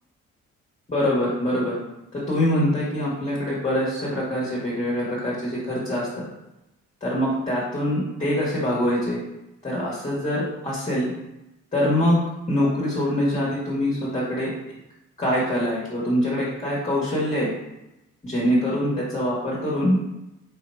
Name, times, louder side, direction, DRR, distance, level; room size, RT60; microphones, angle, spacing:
voice 1, 0.9-1.7 2.1-6.1 7.0-9.2 9.6-11.1 11.7-12.2 12.5-14.5 15.2-17.5 18.2-20.0, equal, 25° left, -6 dB, 1.4 m, -24 dB
3.5 x 2.9 x 4.5 m, 0.94 s
cardioid pair, 90°, 30 cm